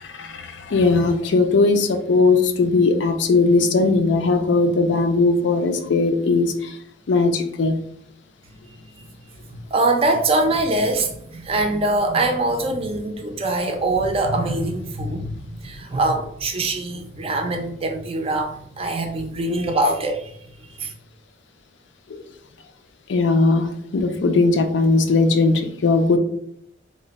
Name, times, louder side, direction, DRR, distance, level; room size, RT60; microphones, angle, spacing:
voice 1, 0.0-6.8 7.1-7.8 22.1-22.2 23.1-26.2, left 3 dB, 75° left, 0.4 m, -19 dB
voice 2, 9.5-15.4 15.6-20.3 20.8-20.9, right 2 dB, 30° right, 0.5 m, -23 dB
3.2 x 2.1 x 3.9 m
head